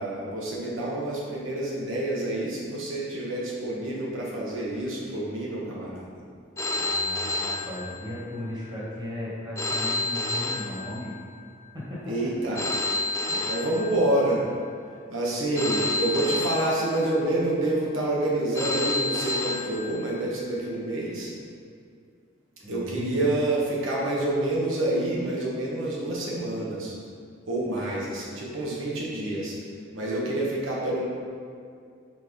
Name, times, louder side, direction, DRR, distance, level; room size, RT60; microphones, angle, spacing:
voice 1, 0.0-6.1 12.1-12.8 13.3-14.4 15.1-21.3 22.7-26.9 27.5-29.5 29.9-31.1, right 1 dB, 75° right, -5 dB, 1.3 m, -28 dB
Telephone, 6.6-8.4 9.6-11.4 12.5-14.4 15.5-17.4 18.5-20.4, left 2 dB, 15° left, 0.4 m, -30 dB
voice 2, 6.7-11.1 11.7-12.3 13.3-13.6 22.6-23.3 27.8-28.1, left 1 dB, 20° right, -8 dB, 1.7 m, -36 dB
6.1 x 4.5 x 5.0 m, 2.4 s
head